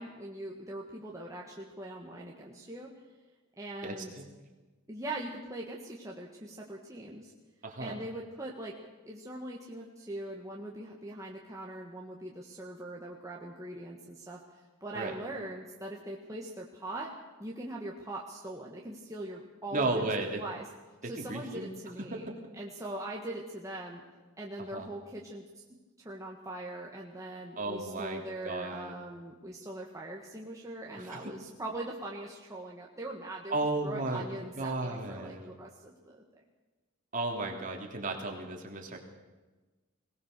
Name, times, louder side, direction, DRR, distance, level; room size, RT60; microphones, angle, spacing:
voice 1, 0.0-2.9 3.6-4.1 4.9-7.3 7.8-8.7 9.0-14.4 14.8-17.1 17.4-20.1 20.4-20.6 21.0-24.0 24.4-25.6 26.0-33.6 33.8-36.2, right 1 dB, 15° right, -2 dB, 1.7 m, -41 dB
voice 2, 3.8-4.2 7.6-8.0 14.9-15.2 19.7-20.4 21.0-21.7 22.0-22.4 24.7-24.9 27.6-28.9 30.9-31.2 33.5-34.2 34.6-35.5 37.1-39.0, right 2 dB, 40° right, 1 dB, 3.1 m, -34 dB
21.5 x 18.5 x 6.7 m, 1.2 s
head